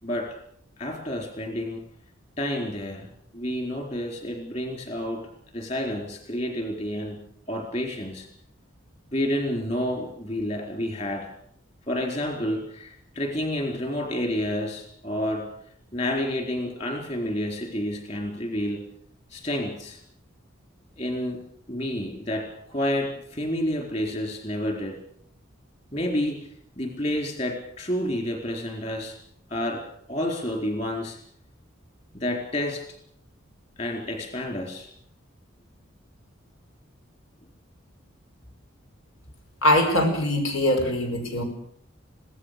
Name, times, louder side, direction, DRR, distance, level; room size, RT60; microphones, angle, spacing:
voice 1, 0.0-0.4 0.8-1.8 2.4-3.1 3.3-5.3 5.5-8.3 9.1-11.3 11.9-15.5 15.9-18.9 19.3-20.0 21.0-21.4 21.7-25.0 25.9-26.5 26.8-29.2 29.5-31.2 32.1-32.9 33.8-34.9, left 1 dB, 35° left, 2 dB, 4.3 m, -29 dB
voice 2, 39.6-41.4, left 1 dB, 90° left, 4 dB, 5.4 m, -22 dB
25.0 x 17.5 x 6.8 m, 0.68 s
head